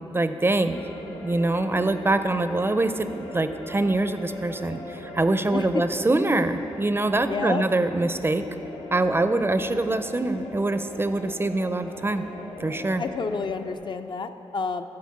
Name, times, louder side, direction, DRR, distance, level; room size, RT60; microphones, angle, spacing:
voice 1, 0.1-0.8 1.2-8.4 8.9-12.2 12.6-13.0, right 2 dB, 20° right, 9 dB, 0.4 m, -24 dB
sound 1, 0.7-13.7, left 2 dB, 85° left, 1.0 m, -40 dB
voice 2, 5.5-5.8 7.3-7.7 13.0-14.9, left 4 dB, 50° left, 8 dB, 0.4 m, -29 dB
11.5 x 4.0 x 7.5 m, 2.9 s
cardioid pair, 75°, 10 cm